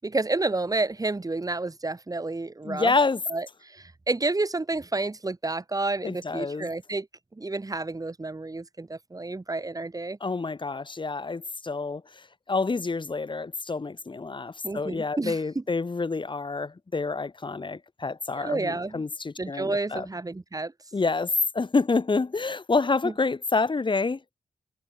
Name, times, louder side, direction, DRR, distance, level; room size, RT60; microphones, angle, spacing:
voice 1, 0.0-2.9 3.3-3.5 3.7-7.1 7.4-10.2 14.6-15.6 18.3-19.0 19.4-20.7 23.0-23.1, right 2 dB, 30° right, 7.5 m, -30 dB
voice 2, 2.6-3.2 6.0-6.7 10.2-12.0 12.5-20.1 20.9-24.2, left 4 dB, 40° left, 4.7 m, -28 dB
cardioid pair, 65°, 13 cm